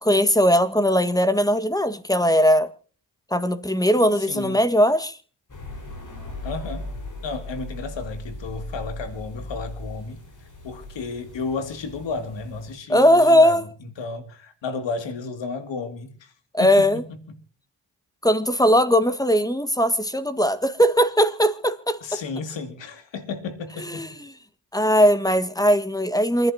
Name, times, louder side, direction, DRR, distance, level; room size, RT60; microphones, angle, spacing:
voice 1, 0.0-2.7 3.3-5.2 12.9-13.6 16.5-17.0 18.2-22.2 23.8-24.3 24.7-26.5, equal, 10° left, 1.6 m, -19 dB
voice 2, 4.2-4.6 6.4-6.9 7.2-10.2 10.6-16.3 16.6-16.9 22.0-24.1, left 4 dB, 75° left, 2.5 m, -33 dB
sound 1, 5.5-12.8, left 1 dB, 40° left, 5.1 m, -38 dB
27.5 x 11.0 x 2.8 m
supercardioid pair, 55°, 44 cm